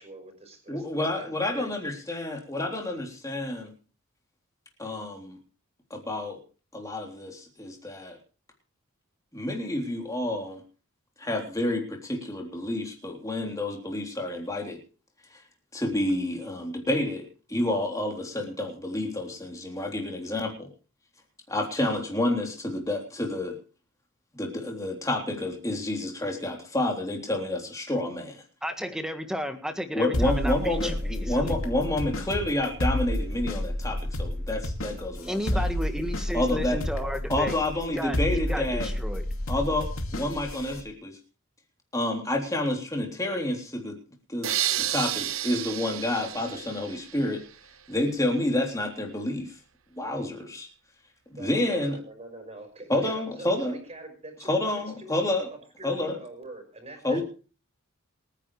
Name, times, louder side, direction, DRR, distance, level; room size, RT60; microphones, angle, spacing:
voice 1, 0.0-0.8 1.1-1.9 51.3-54.6 55.0-57.2, right 2 dB, 30° right, 5 dB, 5.6 m, -44 dB
voice 2, 0.7-3.7 4.8-5.4 5.9-6.4 6.7-8.2 9.3-10.6 11.2-14.8 15.3-15.4 15.7-20.7 21.5-23.5 24.3-28.4 29.9-35.7 36.3-36.8 37.3-38.9 39.5-41.2 41.9-44.0 44.3-47.4 47.9-49.6 50.0-50.7 51.3-52.0 52.9-53.8 54.5-55.5 55.8-56.2 57.0-57.2, left 1 dB, 15° left, 1 dB, 3.5 m, -29 dB
voice 3, 28.6-31.5 35.2-37.5 37.9-38.2 38.5-39.2, equal, 5° right, 7 dB, 1.6 m, -33 dB
sound 1, 30.1-40.8, left 1 dB, 65° left, 2.5 m, -30 dB
sound 2, 44.4-47.4, right 12 dB, 65° right, 0.9 m, -31 dB
27.0 x 10.0 x 3.3 m, 0.37 s
head